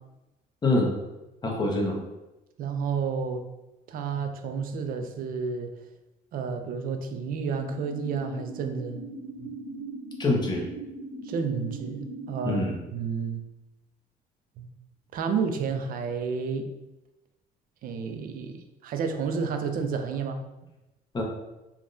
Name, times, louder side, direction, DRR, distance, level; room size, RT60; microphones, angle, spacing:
voice 1, 0.6-0.9 1.4-2.0 10.2-10.7 12.4-12.8 21.1-21.2, left 2 dB, 25° left, -1 dB, 0.7 m, -25 dB
voice 2, 2.6-3.4 3.9-5.7 6.3-9.0 9.4-9.5 11.2-12.6 12.9-13.4 14.6-14.7 15.1-16.7 17.8-20.4, right 5 dB, 55° right, 6 dB, 0.4 m, -30 dB
sound 1, 7.5-12.5, right 3 dB, 75° right, 0.8 m, -39 dB
3.5 x 2.2 x 2.5 m, 0.99 s
cardioid pair, 110°, 17 cm